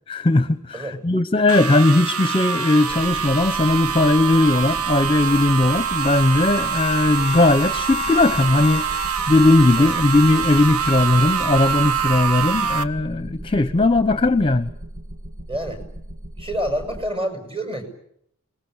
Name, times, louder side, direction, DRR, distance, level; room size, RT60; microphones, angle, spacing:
voice 1, 0.1-14.7, left 2 dB, 25° left, 1.0 m, -18 dB
sound 1, 1.5-12.8, right 6 dB, 80° right, 1.6 m, -25 dB
sound 2, 2.9-17.1, equal, 60° right, 1.7 m, -37 dB
voice 2, 15.5-15.8 16.4-17.8, equal, 25° right, 7.3 m, -27 dB
29.5 x 21.5 x 8.0 m
head